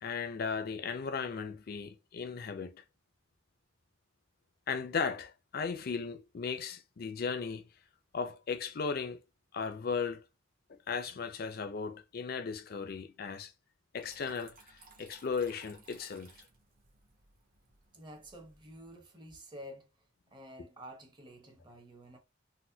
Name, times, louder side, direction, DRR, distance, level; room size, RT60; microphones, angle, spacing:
voice 1, 0.0-2.8 4.7-7.6 8.1-9.2 9.5-10.2 10.7-13.5 13.9-16.3 20.6-20.7, left 5 dB, 50° left, 0.5 m, -36 dB
Water tap faucet / Trickle dribble, 13.9-18.9, right 3 dB, 45° right, 1.0 m, -60 dB
voice 2, 17.9-19.9 20.3-22.2, equal, 25° right, 0.9 m, -50 dB
4.0 x 2.1 x 2.7 m
head